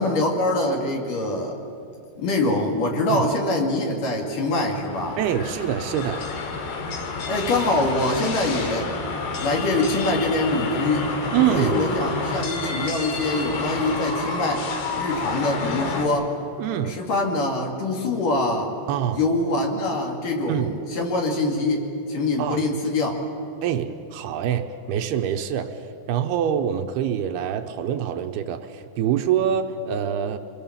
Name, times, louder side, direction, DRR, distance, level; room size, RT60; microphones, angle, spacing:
voice 1, 0.0-1.6 2.2-5.2 7.3-8.9 9.4-11.1 11.5-14.7 15.0-16.3 16.9-18.7 19.1-23.1, left 2 dB, 55° left, 1 dB, 3.5 m, -24 dB
sound 1, 4.5-16.1, left 3 dB, 75° left, 4.1 m, -29 dB
voice 2, 5.2-6.3 11.3-11.8 16.6-17.0 18.9-19.2 20.5-20.8 22.4-22.7 23.6-25.8 26.1-30.4, right 9 dB, 80° right, 6 dB, 2.7 m, -25 dB
27.0 x 20.5 x 7.3 m, 2.7 s
omnidirectional pair, 4.9 m